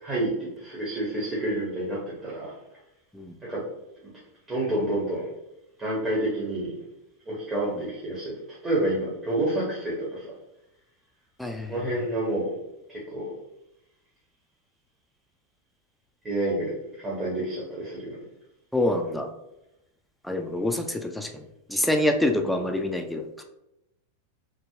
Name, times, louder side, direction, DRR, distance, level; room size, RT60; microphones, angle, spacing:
voice 1, 0.0-2.5 3.4-3.6 4.0-4.1 4.5-5.3 5.8-6.7 7.3-8.3 8.6-10.3 11.7-12.5 12.9-13.3 16.2-18.2 22.4-22.6, right 1 dB, 20° right, -6 dB, 0.7 m, -29 dB
voice 2, 11.4-12.1 18.7-19.3 20.2-23.4, left 1 dB, ahead, 4 dB, 0.3 m, -27 dB
3.3 x 2.0 x 2.3 m, 0.89 s
figure-of-eight pair, 90°, 0 cm